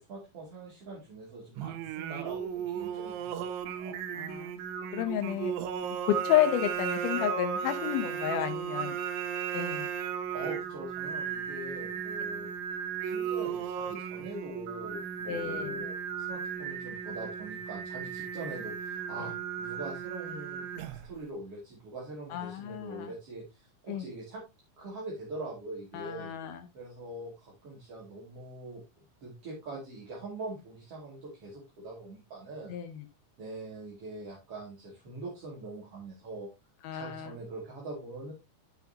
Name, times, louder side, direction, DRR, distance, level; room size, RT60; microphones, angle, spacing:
voice 1, 0.0-3.9 10.3-12.5 13.0-20.7 21.0-24.4 24.8-26.3 26.7-28.8 29.2-32.8 33.4-36.5 36.9-38.3, right 2 dB, 40° right, -4 dB, 2.7 m, -43 dB
Singing, 1.6-21.2, right 7 dB, 85° right, 3.3 m, -35 dB
voice 2, 4.2-4.5 4.9-5.5 6.0-9.0 9.5-9.9 15.3-15.8 19.2-19.3 22.3-23.1 23.9-24.1 25.9-26.7 32.7-33.0 36.8-37.3, left 11 dB, 90° left, 7 dB, 2.1 m, -31 dB
12.5 x 5.8 x 2.8 m, 0.24 s
omnidirectional pair, 5.3 m